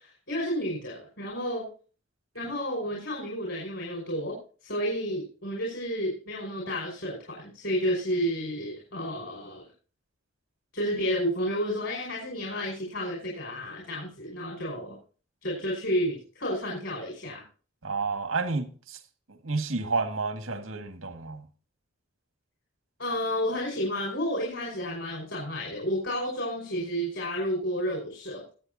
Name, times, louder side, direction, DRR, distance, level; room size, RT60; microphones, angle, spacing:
voice 1, 0.0-1.7 2.3-9.7 10.7-15.0 15.4-17.4 23.0-28.4, equal, 65° left, 5.3 m, -31 dB
voice 2, 17.8-19.0 19.3-21.4, right 4 dB, 85° right, 1.9 m, -30 dB
22.5 x 8.1 x 2.7 m
head